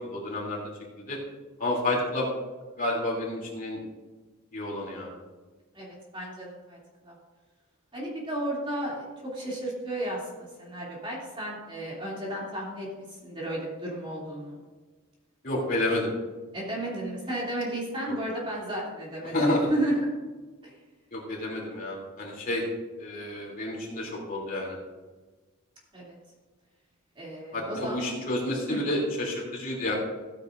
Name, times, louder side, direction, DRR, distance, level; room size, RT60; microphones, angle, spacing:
voice 1, 0.1-0.6 1.1-1.2 1.6-2.3 2.8-3.8 4.5-5.1 15.4-16.1 18.1-18.2 19.3-19.6 21.1-22.6 23.0-24.8 27.5-29.9, left 1 dB, 40° left, -3 dB, 3.0 m, -30 dB
voice 2, 5.7-6.8 7.0-7.1 7.9-9.1 9.3-12.9 13.2-14.6 16.5-20.1 20.6-20.7 25.9-26.2 27.2-28.2 28.7-28.9, right 1 dB, 25° right, -5 dB, 2.8 m, -33 dB
15.5 x 9.5 x 2.6 m, 1.3 s
head